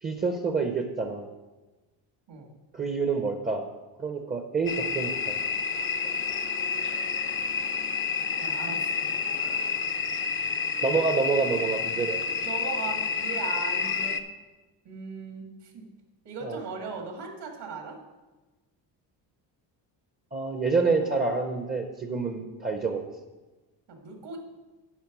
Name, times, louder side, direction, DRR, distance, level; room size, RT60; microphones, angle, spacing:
voice 1, 0.0-1.3 2.7-3.7 4.0-5.4 6.0-6.1 9.4-9.5 10.8-12.2 16.4-16.6 20.3-23.0, right 4 dB, 20° right, 5 dB, 0.6 m, -27 dB
sound 1, 4.7-14.2, left 5 dB, 30° left, 0.4 m, -29 dB
voice 2, 8.4-9.0 12.4-14.2 14.9-15.9 16.2-18.0 23.9-24.4, right 4 dB, 65° right, 2 dB, 1.9 m, -38 dB
10.0 x 4.5 x 5.9 m, 1.2 s
cardioid pair, 125°, 45 cm